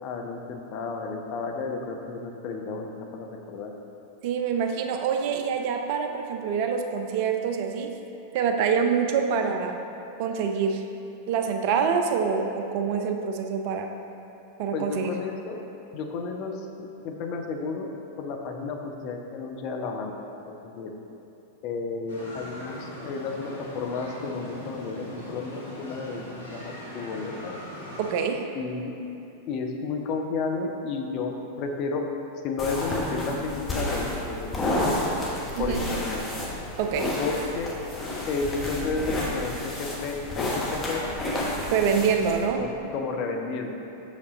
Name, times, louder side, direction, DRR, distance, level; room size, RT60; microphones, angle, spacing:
voice 1, 0.0-3.7 14.7-15.6 15.9-17.9 18.2-20.2 20.5-20.9 21.6-27.5 28.5-28.9 29.5-32.1 32.4-35.1 35.6-36.2 37.2-37.7 38.3-41.1 42.6-43.7, left 4 dB, 40° left, 2 dB, 0.6 m, -32 dB
voice 2, 4.2-7.9 8.3-9.8 10.2-10.8 11.3-13.9 14.6-15.1 28.0-28.4 35.6-35.8 36.8-37.2 41.6-42.6, right 6 dB, 45° right, 5 dB, 0.4 m, -26 dB
sound 1, 22.1-28.1, equal, 70° left, 1.4 m, -41 dB
sound 2, 32.6-42.5, left 1 dB, 15° left, 1.3 m, -31 dB
6.8 x 5.1 x 3.8 m, 2.8 s
figure-of-eight pair, 90°, 0 cm